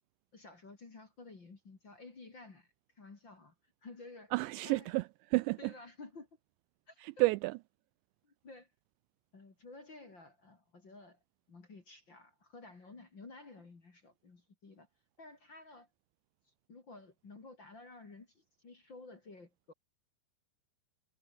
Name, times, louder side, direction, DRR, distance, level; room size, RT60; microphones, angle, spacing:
voice 1, 0.3-2.7 2.9-3.5 3.8-4.3 4.6-4.9 5.6-6.3 6.9-7.1 8.2-8.7 9.3-11.2 11.5-14.9 15.2-15.9 16.5-19.7, left 3 dB, 30° left, 2.8 m, -53 dB
voice 2, 4.3-5.7 7.0-7.6, right 22 dB, 85° right, 2.6 m, -31 dB
omnidirectional pair, 5.4 m